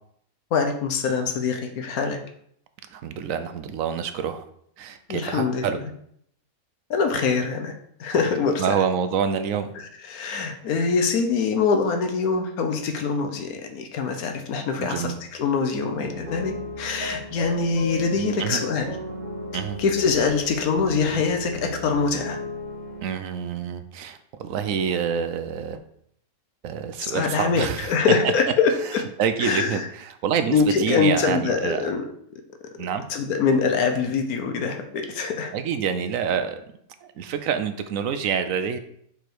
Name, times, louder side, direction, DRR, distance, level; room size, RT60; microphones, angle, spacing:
voice 1, 0.5-2.2 5.1-5.7 6.9-7.7 8.0-8.6 9.8-18.9 19.8-22.4 27.0-29.0 29.4-29.9 30.5-32.0 33.1-35.5, left 5 dB, 80° left, 6 dB, 1.3 m, -24 dB
voice 2, 2.9-4.4 4.8-5.8 8.6-9.7 14.8-15.2 18.4-18.6 19.5-19.8 23.0-25.8 26.6-28.0 28.2-28.3 29.2-31.9 32.8-33.0 35.5-36.6 37.0-38.8, right 7 dB, 70° right, 9 dB, 0.9 m, -27 dB
sound 1, 15.7-23.0, left 1 dB, 30° right, 1.5 m, -34 dB
5.1 x 4.8 x 4.6 m, 0.68 s
omnidirectional pair, 1.5 m